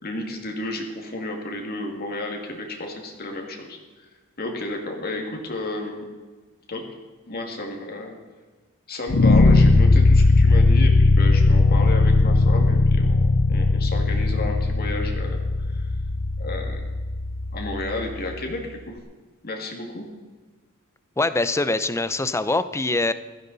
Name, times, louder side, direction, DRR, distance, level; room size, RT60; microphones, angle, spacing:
voice 1, 0.0-4.1 4.4-6.1 6.7-6.8 7.3-8.2 8.9-15.9 16.4-16.8 17.5-19.0 19.4-20.0, left 2 dB, 45° left, 1 dB, 2.2 m, -32 dB
sound 1, 9.1-18.2, left 3 dB, 65° left, 0.8 m, -18 dB
voice 2, 21.2-23.1, left 2 dB, 15° left, 13 dB, 0.6 m, -23 dB
16.5 x 14.5 x 4.1 m, 1.3 s
head